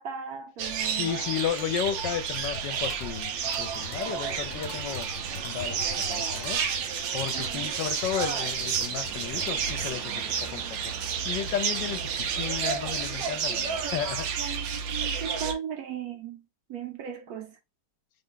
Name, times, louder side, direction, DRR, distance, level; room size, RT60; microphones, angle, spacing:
voice 1, 0.0-1.1 7.3-7.7 13.8-14.0 14.4-16.4 16.7-17.6, right 8 dB, 65° right, 1.0 m, -37 dB
sound 1, 0.6-15.5, right 7 dB, 90° right, 1.4 m, -31 dB
voice 2, 0.9-5.1 5.4-6.6 7.1-10.8 11.2-14.3, left 9 dB, 80° left, 1.2 m, -33 dB
sound 2, 1.4-9.9, left 4 dB, 60° left, 1.0 m, -43 dB
3.5 x 2.2 x 3.8 m
omnidirectional pair, 2.0 m